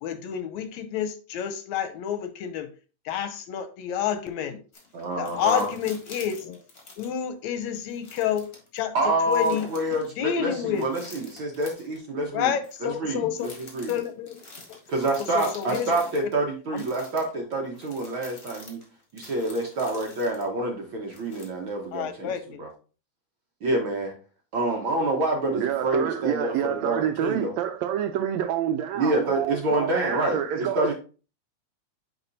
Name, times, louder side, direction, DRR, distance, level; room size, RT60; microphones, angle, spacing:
voice 1, 0.0-2.7 3.1-4.6 5.2-6.6 7.0-9.0 9.3-9.7 10.2-10.9 12.3-13.5 13.9-14.4 15.2-15.9 16.7-16.8 21.9-22.6, left 9 dB, 75° left, 1.8 m, -29 dB
sound 1, 4.7-7.2 7.7-8.8 9.3-10.1 10.7-12.0 12.6-12.8 13.4-16.3 16.8-20.5 21.1-21.8 22.4-22.5, left 3 dB, 35° left, 1.6 m, -46 dB
voice 2, 4.9-5.7 8.9-12.5 12.8-13.3 13.6-13.9 14.9-18.8 19.1-22.7 23.6-24.1 24.5-27.5 28.9-30.9, right 2 dB, 55° right, 1.5 m, -27 dB
voice 3, 25.5-30.9, right 9 dB, 80° right, 1.7 m, -28 dB
8.8 x 4.4 x 2.6 m
omnidirectional pair, 3.4 m